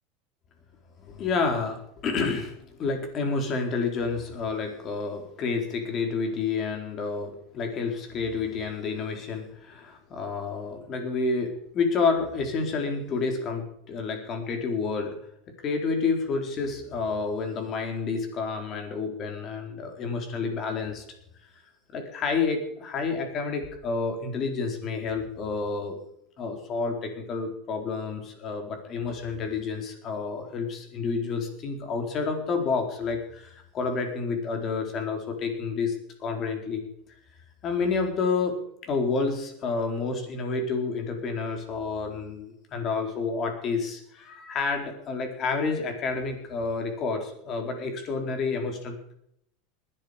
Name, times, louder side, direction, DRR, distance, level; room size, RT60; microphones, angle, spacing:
voice 1, 1.0-15.2 15.6-21.0 21.9-26.0 26.4-35.9 36.2-36.9 37.6-38.5 38.8-49.1, left 4 dB, 35° left, 4 dB, 4.2 m, -29 dB
20.0 x 11.0 x 5.2 m, 0.73 s
supercardioid pair, 140°, 0 cm